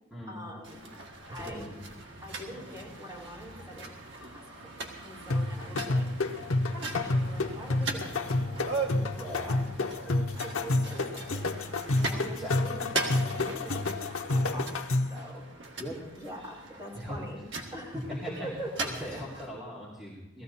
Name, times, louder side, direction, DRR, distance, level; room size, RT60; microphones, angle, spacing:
voice 1, 0.3-0.8 1.3-1.7 2.2-4.4 4.8-6.1 6.7-11.6 11.9-14.7 15.1-15.4 16.2-17.4 17.7-18.7 19.1-19.2, equal, 20° right, -7 dB, 5.5 m, -43 dB
sound 1, 0.6-19.5, right 3 dB, 60° right, 1.8 m, -40 dB
voice 2, 1.3-1.7 9.2-9.5 12.2-12.7 14.3-14.5 15.8-16.0 16.9-17.2 18.2-18.5 18.8-20.4, equal, ahead, -8 dB, 2.9 m, -40 dB
sound 2, 5.3-15.2, left 2 dB, 90° left, 0.9 m, -29 dB
18.5 x 14.5 x 4.1 m, 0.96 s
head